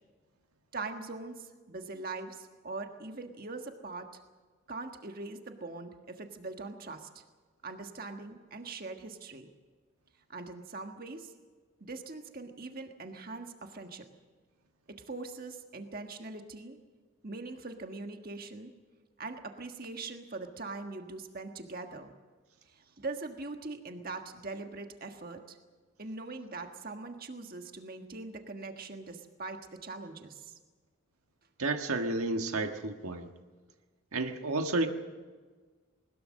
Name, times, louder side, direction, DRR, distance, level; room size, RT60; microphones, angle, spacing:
voice 1, 0.7-4.1 4.7-7.2 7.6-9.5 10.3-11.3 11.8-14.1 14.9-16.8 17.2-18.7 19.2-22.2 22.7-25.6 26.0-30.6, right 3 dB, 40° right, 5 dB, 1.5 m, -42 dB
voice 2, 31.6-33.3 34.1-34.9, right 2 dB, 85° right, 5 dB, 1.6 m, -31 dB
21.0 x 20.5 x 6.5 m, 1.4 s
head